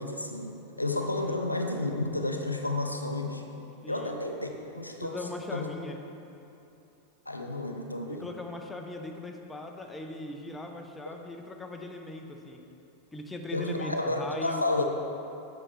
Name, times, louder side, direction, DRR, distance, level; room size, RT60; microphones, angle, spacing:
voice 1, 0.0-3.4 3.9-5.2 5.5-5.6 7.3-8.3 13.5-14.8, left 2 dB, 85° left, 3 dB, 0.5 m, -31 dB
voice 2, 3.8-4.2 5.0-6.0 8.0-12.6 13.1-14.8, left 2 dB, 10° left, 3 dB, 0.6 m, -39 dB
7.6 x 6.4 x 3.1 m, 2.8 s
figure-of-eight pair, 90°, 0 cm